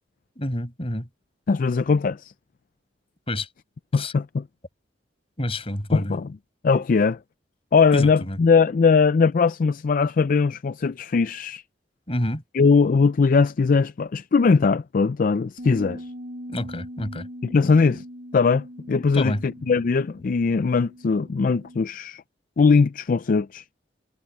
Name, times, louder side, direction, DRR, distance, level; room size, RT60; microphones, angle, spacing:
voice 1, 0.4-1.1 3.3-3.5 3.9-4.1 5.4-6.2 7.9-8.4 12.1-12.4 16.5-17.3 19.1-19.4, left 1 dB, 35° left, 6.1 m, -28 dB
voice 2, 1.5-2.3 3.9-4.4 5.9-6.3 6.6-7.2 7.7-11.6 12.5-16.1 17.4-18.0 18.3-22.2 22.6-23.6, left 4 dB, 50° left, 0.4 m, -20 dB
Bass guitar, 15.6-21.8, equal, 60° right, 4.3 m, -41 dB
head